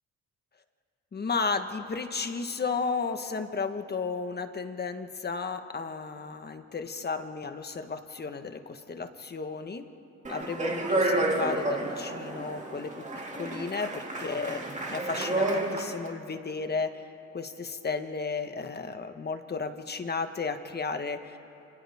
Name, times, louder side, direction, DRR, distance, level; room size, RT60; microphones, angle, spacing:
voice 1, 1.1-9.9 10.3-13.0 13.3-17.1 17.3-21.4, left 4 dB, 35° left, 7 dB, 1.4 m, -33 dB
Speech, 10.2-16.1, right 2 dB, 25° right, 2.6 m, -30 dB
29.5 x 27.0 x 3.6 m, 2.8 s
cardioid pair, 90°, 30 cm